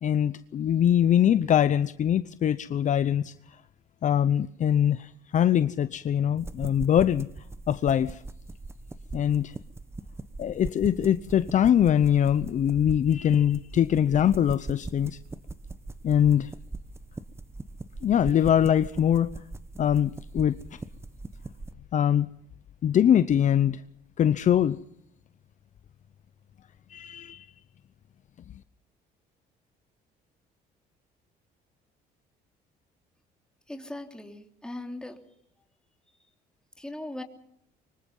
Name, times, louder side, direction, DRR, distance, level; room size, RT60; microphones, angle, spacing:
voice 1, 0.0-3.3 4.0-7.3 7.7-8.2 9.1-9.5 10.4-15.2 16.0-16.5 18.0-19.3 19.8-20.6 21.9-22.3 22.8-23.8 24.2-24.8 26.9-27.5, left 9 dB, 45° left, 0.8 m, -23 dB
sound 1, 6.4-21.7, right 2 dB, 15° right, 1.1 m, -41 dB
voice 2, 33.7-35.2 36.8-37.2, left 1 dB, 5° left, 3.3 m, -39 dB
25.0 x 23.5 x 5.5 m
cardioid pair, 110°, 17 cm